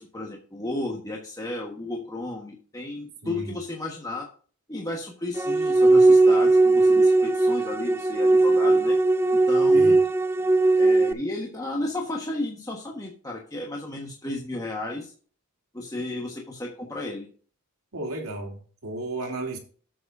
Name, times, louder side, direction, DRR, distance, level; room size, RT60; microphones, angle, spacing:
voice 1, 0.0-4.3 4.7-9.0 9.5-10.0 10.8-15.1 15.7-17.3, left 2 dB, 15° left, 0 dB, 1.3 m, -33 dB
voice 2, 3.2-3.5 9.7-10.0 17.9-19.6, right 2 dB, 75° right, 2 dB, 2.5 m, -34 dB
sound 1, 5.4-11.1, right 2 dB, 10° right, 0.4 m, -19 dB
10.5 x 7.8 x 2.6 m, 0.41 s
head